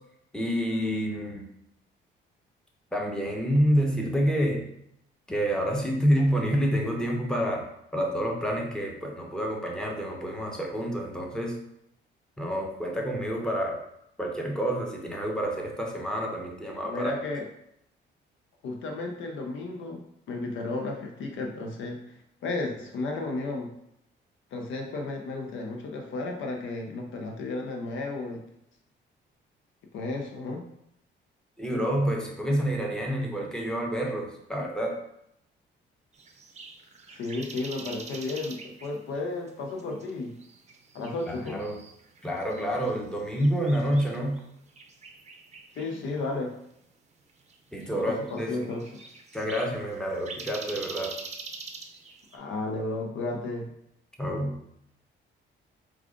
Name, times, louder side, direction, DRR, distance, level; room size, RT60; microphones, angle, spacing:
voice 1, 0.3-1.5 2.9-4.7 5.3-7.7 7.9-11.6 12.4-13.8 14.2-17.1 31.6-35.0 41.3-41.8 42.2-44.4 47.7-48.5 49.3-51.2 54.2-54.6, equal, 5° left, 0 dB, 0.9 m, -28 dB
voice 2, 16.8-17.5 18.6-20.0 20.3-22.0 22.4-23.7 24.5-28.4 29.9-30.6 37.1-40.4 40.9-41.6 45.8-46.6 48.0-49.0 52.3-53.7, left 2 dB, 75° left, 2 dB, 0.8 m, -33 dB
sound 1, 36.1-52.4, right 4 dB, 35° right, 0.6 m, -45 dB
4.7 x 2.4 x 3.7 m, 0.77 s
cardioid pair, 90°, 20 cm